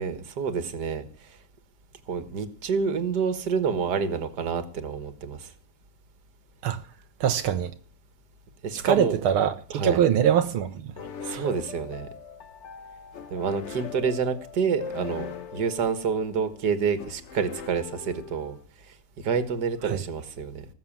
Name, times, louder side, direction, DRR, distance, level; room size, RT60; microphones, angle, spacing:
voice 1, 0.0-1.4 2.1-5.5 8.6-9.2 9.7-10.0 11.2-12.1 13.3-18.6 18.9-20.7, right 6 dB, 50° right, 2.1 m, -28 dB
voice 2, 7.2-7.7 8.8-10.9 11.3-11.5 19.8-20.0, right 9 dB, 85° right, 1.9 m, -23 dB
sound 1, 11.0-18.6, left 6 dB, 50° left, 0.8 m, -41 dB
19.5 x 7.4 x 7.4 m
omnidirectional pair, 2.3 m